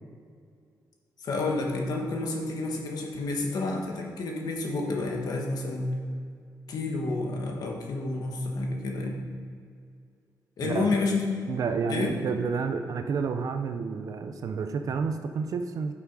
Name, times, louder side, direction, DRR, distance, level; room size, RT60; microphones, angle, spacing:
voice 1, 1.2-6.0 6.7-9.2 10.6-11.2 11.9-12.1, left 3 dB, 65° left, 0 dB, 1.5 m, -29 dB
voice 2, 10.6-11.0 11.5-15.9, right 5 dB, 55° right, 7 dB, 0.6 m, -30 dB
12.0 x 5.9 x 4.8 m, 2.3 s
wide cardioid pair, 170°, 7 cm